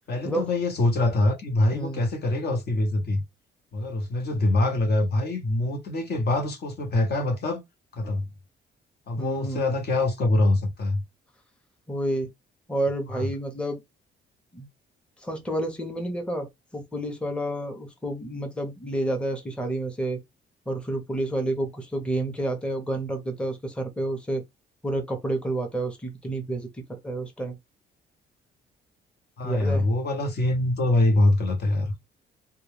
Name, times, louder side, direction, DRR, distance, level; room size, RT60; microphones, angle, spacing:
voice 1, 0.1-3.2 3.7-7.6 7.9-8.2 9.1-11.0 13.1-13.3 29.4-31.9, left 2 dB, 55° left, 0.9 m, -24 dB
voice 2, 1.7-2.0 9.2-9.7 11.9-12.3 12.7-13.8 14.5-14.7 15.2-20.2 20.7-24.4 24.8-27.6 29.4-29.9, right 1 dB, 5° left, 0.7 m, -30 dB
2.3 x 2.2 x 3.2 m
cardioid pair, 90°, 20 cm